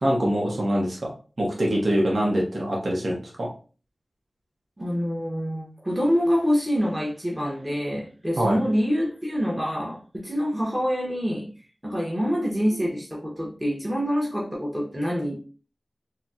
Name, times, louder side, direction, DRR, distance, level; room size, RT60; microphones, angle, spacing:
voice 1, 0.0-1.1 1.4-3.5 8.4-8.6, equal, 70° right, -3 dB, 0.7 m, -24 dB
voice 2, 4.8-11.5 11.8-15.4, equal, 15° right, -3 dB, 0.8 m, -26 dB
3.9 x 2.0 x 2.3 m, 0.37 s
cardioid pair, 40°, 0 cm